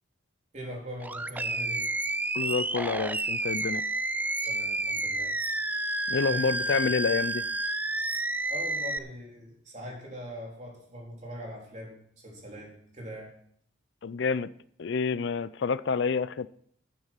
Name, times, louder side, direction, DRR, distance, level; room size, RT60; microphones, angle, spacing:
voice 1, 0.5-1.9 4.4-5.4 6.2-6.5 8.5-13.3, equal, 35° right, -1 dB, 3.8 m, -42 dB
Animal, 1.0-9.0, right 2 dB, 10° right, 0.4 m, -30 dB
voice 2, 2.3-3.8 6.1-7.4 14.0-14.5 14.8-16.5, left 5 dB, 60° left, 17 dB, 0.4 m, -28 dB
11.0 x 9.7 x 5.8 m, 0.64 s
head